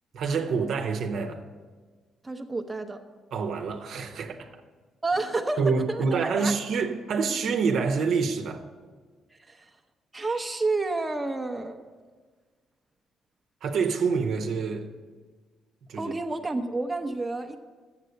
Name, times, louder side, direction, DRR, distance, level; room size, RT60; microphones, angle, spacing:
voice 1, 0.1-1.4 3.3-4.5 5.6-8.6 13.6-14.9 15.9-16.1, right 5 dB, 70° right, 5 dB, 0.8 m, -27 dB
voice 2, 2.2-3.0 5.0-6.5 9.3-9.7 10.1-11.8 16.0-17.6, right 3 dB, 15° right, 4 dB, 0.8 m, -30 dB
7.3 x 6.7 x 7.7 m, 1.4 s
cardioid pair, 90°, 0 cm